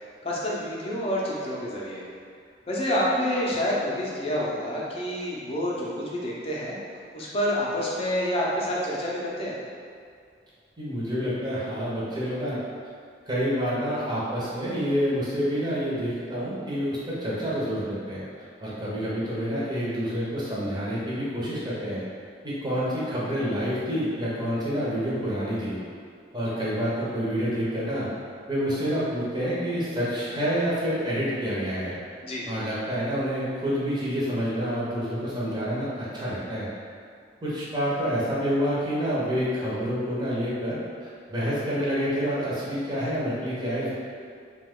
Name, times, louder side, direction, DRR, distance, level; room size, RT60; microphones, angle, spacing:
voice 1, 0.2-2.0 2.7-6.8 7.1-9.6 32.2-32.5, equal, 30° left, -5 dB, 0.5 m, -28 dB
voice 2, 10.8-12.6 13.3-18.2 18.6-22.0 22.4-25.8 26.3-28.1 28.5-32.0 32.5-36.7 37.4-43.9, equal, 25° right, -8 dB, 0.7 m, -28 dB
2.9 x 2.2 x 3.5 m, 2.3 s
head